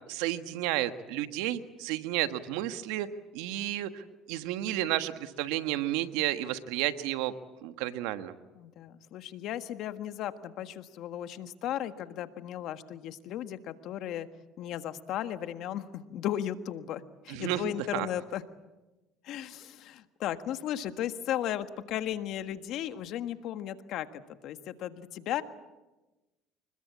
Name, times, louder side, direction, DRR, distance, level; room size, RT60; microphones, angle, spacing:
voice 1, 0.1-3.1 3.3-7.3 7.6-8.3 17.3-17.6 17.9-18.1, right 14 dB, 85° right, 10 dB, 1.4 m, -32 dB
voice 2, 8.5-14.3 14.6-18.4 19.2-25.4, left 11 dB, 65° left, 10 dB, 1.6 m, -35 dB
25.5 x 21.0 x 8.6 m, 1.1 s
supercardioid pair, 90°, 0 cm